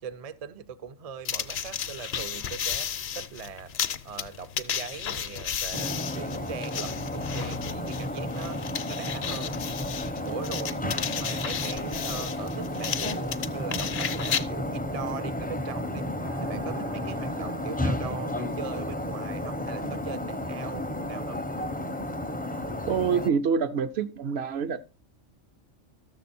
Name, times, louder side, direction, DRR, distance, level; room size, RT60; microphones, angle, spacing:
voice 1, 0.0-3.7 4.0-8.6 8.9-9.6 10.2-10.8 11.1-16.0 16.4-21.4, right 7 dB, 45° right, 0.5 m, -40 dB
sound 1, 1.2-14.4, left 8 dB, 60° left, 0.8 m, -33 dB
sound 2, 5.7-23.3, left 1 dB, 10° left, 0.5 m, -32 dB
sound 3, 16.2-21.4, left 1 dB, 80° right, 2.6 m, -45 dB
voice 2, 22.9-24.8, right 6 dB, 60° right, 0.9 m, -26 dB
13.5 x 6.7 x 4.2 m
omnidirectional pair, 1.3 m